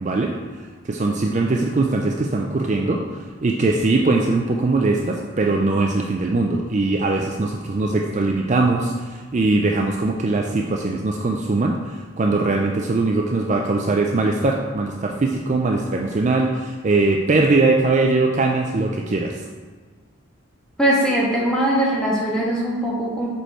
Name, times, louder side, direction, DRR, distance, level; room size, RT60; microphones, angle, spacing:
voice 1, 0.0-19.5, right 3 dB, 35° right, 1 dB, 0.4 m, -21 dB
voice 2, 20.8-23.4, right 1 dB, 5° left, -6 dB, 1.5 m, -21 dB
6.4 x 5.3 x 4.3 m, 1.5 s
head